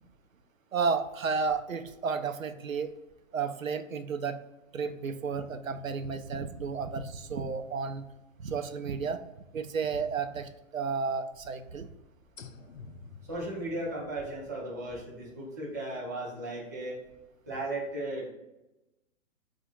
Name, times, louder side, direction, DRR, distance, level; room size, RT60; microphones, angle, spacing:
voice 1, 0.7-2.9 3.3-4.4 4.7-8.1 8.4-9.2 9.5-11.9, right 5 dB, 85° right, 8 dB, 0.5 m, -32 dB
sound 1, 5.7-9.8 10.1-10.2 12.4-14.1, left 5 dB, 75° left, 0.6 m, -53 dB
voice 2, 13.2-17.0 17.5-18.3, right 1 dB, 15° right, -4 dB, 0.4 m, -36 dB
4.6 x 2.4 x 4.0 m, 0.97 s
figure-of-eight pair, 120°, 39 cm